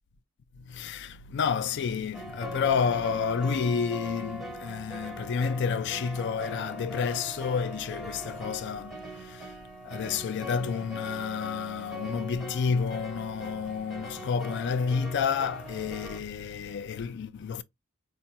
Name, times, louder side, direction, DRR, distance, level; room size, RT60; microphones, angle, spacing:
voice 1, 0.6-9.6 9.8-17.6, left 6 dB, 50° left, 0.3 m, -30 dB
sound 1, 2.1-16.2, equal, ahead, 0.6 m, -41 dB
4.4 x 2.2 x 2.7 m
head